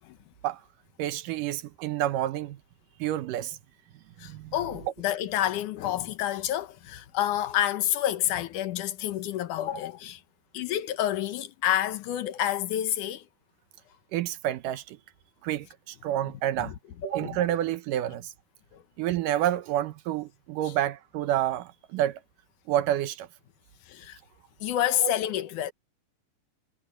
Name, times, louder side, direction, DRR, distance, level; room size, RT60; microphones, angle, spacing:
voice 1, 1.0-2.6 3.0-3.6 4.2-4.5 14.1-15.0 15.4-16.7 17.0-18.3 19.0-22.2 22.7-23.3 25.0-25.1, right 12 dB, 75° right, 2.4 m, -29 dB
voice 2, 4.2-10.2 10.5-13.3 16.2-16.3 16.6-16.7 17.2-17.4 18.7-18.8 23.9-24.2 24.6-25.7, left 12 dB, 70° left, 2.4 m, -29 dB
omnidirectional pair, 4.0 m